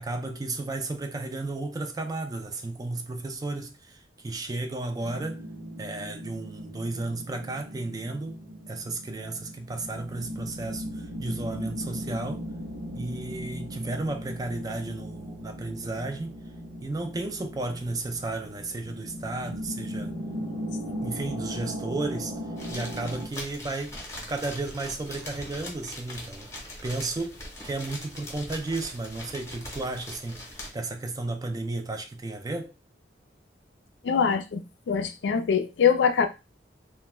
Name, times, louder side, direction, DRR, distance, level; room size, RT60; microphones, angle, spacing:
voice 1, 0.0-5.4 5.8-12.5 12.9-16.4 16.8-20.1 21.0-22.4 22.7-24.0 24.3-26.5 26.8-32.7, right 2 dB, 20° right, 0.3 m, -33 dB
sound 1, 5.0-23.3, equal, 80° right, 0.9 m, -38 dB
sound 2, 22.6-30.7, left 1 dB, 15° left, 0.7 m, -41 dB
voice 2, 34.0-36.3, left 6 dB, 75° left, 0.4 m, -23 dB
2.2 x 2.2 x 3.1 m
head